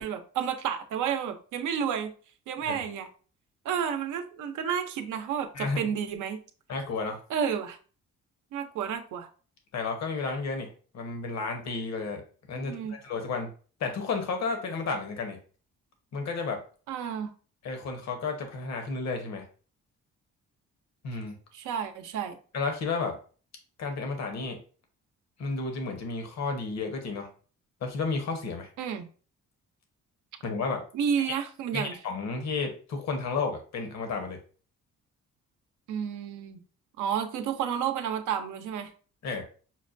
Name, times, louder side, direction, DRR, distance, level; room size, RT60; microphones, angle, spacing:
voice 1, 0.0-2.1 2.5-3.1 3.6-6.4 7.3-7.8 8.5-9.3 12.6-13.0 16.9-17.3 21.5-22.4 28.8-29.1 30.9-32.0 35.9-36.6 37.0-38.9, right 8 dB, 80° right, 7 dB, 0.6 m, -31 dB
voice 2, 6.7-7.2 9.7-10.7 10.9-12.2 12.5-13.5 13.8-15.4 16.1-16.6 17.6-19.5 21.0-21.3 22.5-23.2 23.8-24.6 25.4-27.3 27.8-28.7 30.4-30.8 31.7-34.4 39.2-39.4, left 4 dB, 60° left, 4 dB, 1.0 m, -32 dB
5.8 x 2.2 x 2.5 m, 0.39 s
cardioid pair, 90°, 30 cm